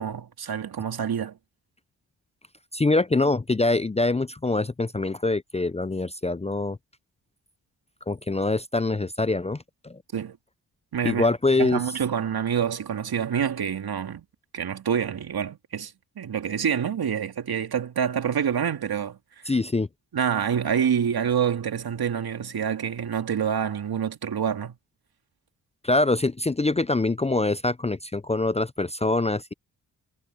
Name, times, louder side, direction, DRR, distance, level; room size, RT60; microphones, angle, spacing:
voice 1, 0.0-1.4 10.1-10.4 10.9-11.3 11.6-14.2 14.5-19.2 20.1-24.8, right 8 dB, 60° right, 2.7 m, -27 dB
voice 2, 2.7-6.8 8.1-10.0 11.0-11.8 19.5-19.9 25.8-29.5, left 2 dB, 15° left, 0.7 m, -24 dB
supercardioid pair, 45°, 41 cm